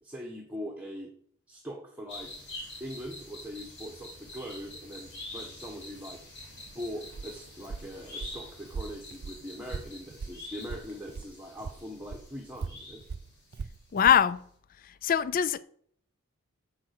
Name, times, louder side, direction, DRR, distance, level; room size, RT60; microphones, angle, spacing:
voice 1, 0.0-1.1 1.5-2.3 2.8-6.2 6.7-13.0, equal, 5° right, 1.3 m, -41 dB
sound 1, 2.1-13.8 14.0-14.1, left 2 dB, 60° left, 3.3 m, -46 dB
Walk footsteps, 6.6-11.3 11.6-14.2, right 5 dB, 50° right, 0.4 m, -40 dB
voice 2, 13.9-14.4 15.0-15.6, left 9 dB, 40° left, 0.3 m, -22 dB
8.8 x 7.3 x 5.9 m
head